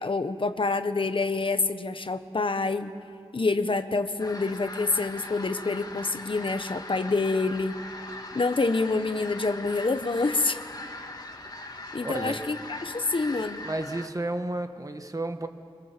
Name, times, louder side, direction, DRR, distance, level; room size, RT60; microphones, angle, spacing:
voice 1, 0.0-2.9 3.3-7.8 8.3-10.6 11.9-13.6, left 3 dB, 55° left, 9 dB, 1.2 m, -27 dB
sound 1, 4.2-14.1, left 2 dB, 40° left, 2.4 m, -40 dB
voice 2, 12.0-12.4 13.6-15.5, right 2 dB, 35° right, 7 dB, 1.6 m, -32 dB
25.5 x 24.5 x 7.5 m, 2.3 s
wide cardioid pair, 70°, 11 cm